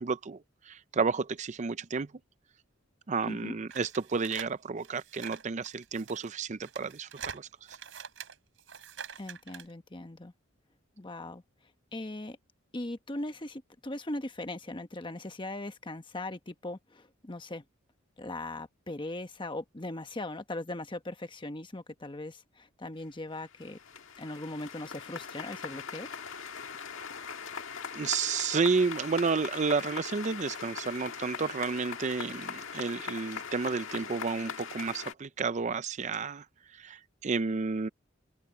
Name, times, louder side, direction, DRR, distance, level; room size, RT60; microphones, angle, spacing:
voice 1, 0.0-2.1 3.1-7.8 27.9-37.9, right 4 dB, 35° right, 0.5 m, -31 dB
sound 1, 3.7-9.7, right 7 dB, 70° right, 4.9 m, -44 dB
voice 2, 9.2-10.3 11.0-11.4 11.9-12.4 12.7-17.6 18.2-23.8 24.2-26.1, left 2 dB, 25° left, 1.1 m, -39 dB
sound 2, 23.0-23.1 23.3-35.1, left 6 dB, 85° left, 1.7 m, -41 dB
open air
head